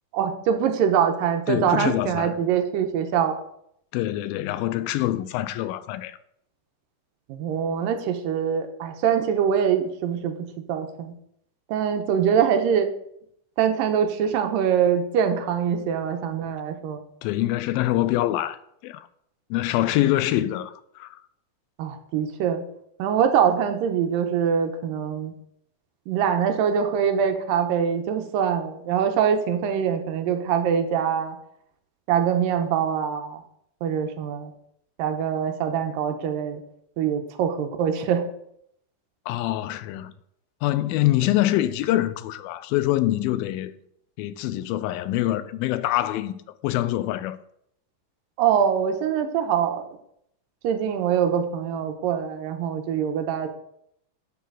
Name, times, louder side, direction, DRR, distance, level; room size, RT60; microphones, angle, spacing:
voice 1, 0.1-3.4 7.3-11.1 11.7-12.9 13.6-17.0 21.8-22.6 23.0-25.3 26.1-31.4 32.1-33.4 33.8-34.5 35.0-36.6 37.0-38.3 48.4-49.9 50.6-53.5, right 8 dB, 80° right, 2.4 m, -23 dB
voice 2, 1.5-2.3 3.9-6.2 17.2-19.1 19.5-21.2 39.3-40.1 40.6-43.7 44.2-47.4, left 14 dB, 85° left, 2.3 m, -25 dB
11.0 x 6.6 x 3.9 m
omnidirectional pair, 4.3 m